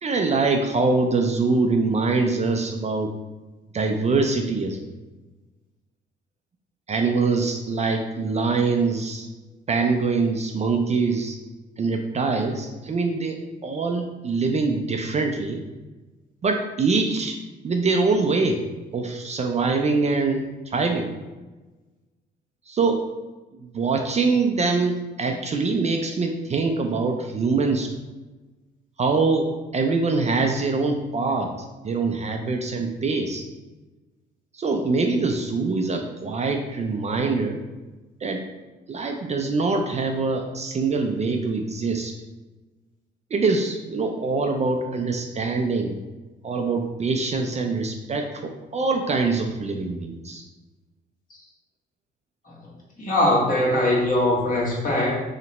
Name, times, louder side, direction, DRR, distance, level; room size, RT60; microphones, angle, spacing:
voice 1, 0.0-3.1 3.7-4.8 6.9-9.3 9.7-11.4 11.8-15.6 16.4-17.4 17.6-18.6 18.9-21.1 22.7-23.0 23.6-27.9 29.0-31.5 31.8-33.4 34.5-37.6 38.2-38.4 38.9-42.1 43.3-46.0 46.4-50.4, right 3 dB, 35° right, 4 dB, 0.4 m, -24 dB
voice 2, 53.0-55.2, left 1 dB, 45° left, -4 dB, 1.4 m, -21 dB
3.3 x 2.9 x 4.0 m, 1.2 s
cardioid pair, 90°, 20 cm